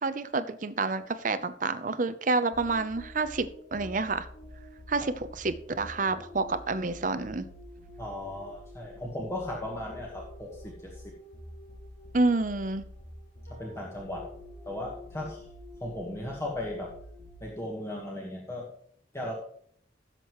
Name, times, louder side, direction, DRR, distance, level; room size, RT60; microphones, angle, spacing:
voice 1, 0.0-4.3 4.9-7.5 12.1-12.8, right 3 dB, 45° right, 11 dB, 0.7 m, -29 dB
sound 1, 2.5-17.7, left 1 dB, 85° left, 3.0 m, -47 dB
voice 2, 8.0-11.0 13.5-14.3 14.6-15.5 15.8-16.9 17.4-18.7 19.1-19.3, left 1 dB, 15° left, -2 dB, 1.5 m, -36 dB
16.0 x 7.5 x 3.1 m, 0.65 s
head